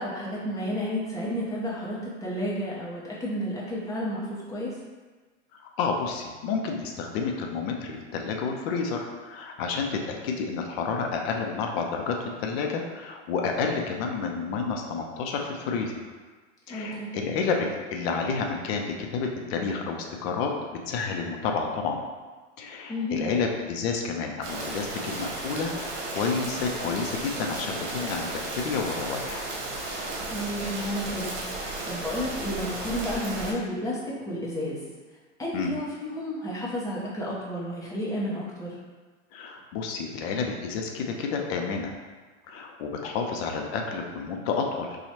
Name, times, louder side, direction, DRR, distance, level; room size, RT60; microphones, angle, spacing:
voice 1, 0.0-4.8 16.7-17.1 22.9-23.2 30.3-34.8 35.4-38.8, equal, 10° left, -6 dB, 0.8 m, -31 dB
voice 2, 5.5-16.0 16.7-22.1 22.6-29.5 35.5-35.7 39.3-41.9 42.5-45.0, left 5 dB, 55° left, 2 dB, 0.6 m, -30 dB
sound 1, 24.4-33.5, right 2 dB, 65° right, 1.0 m, -34 dB
3.0 x 2.4 x 4.1 m, 1.4 s
hypercardioid pair, 120°, 37 cm